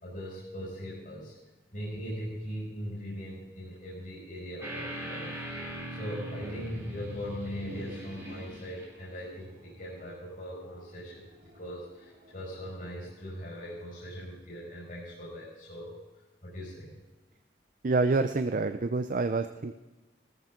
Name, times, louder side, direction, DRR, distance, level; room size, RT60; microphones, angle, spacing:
voice 1, 0.0-1.3 1.7-5.4 5.9-11.3 11.5-15.9 16.4-16.9, equal, 50° left, -5 dB, 5.3 m, -40 dB
sound 1, 4.6-8.9, right 1 dB, 15° right, 2.6 m, -40 dB
sound 2, 7.5-13.8, equal, 75° right, 3.9 m, -51 dB
voice 2, 17.8-19.7, right 3 dB, 50° right, 9 dB, 0.5 m, -27 dB
18.0 x 14.0 x 3.8 m, 1.2 s
head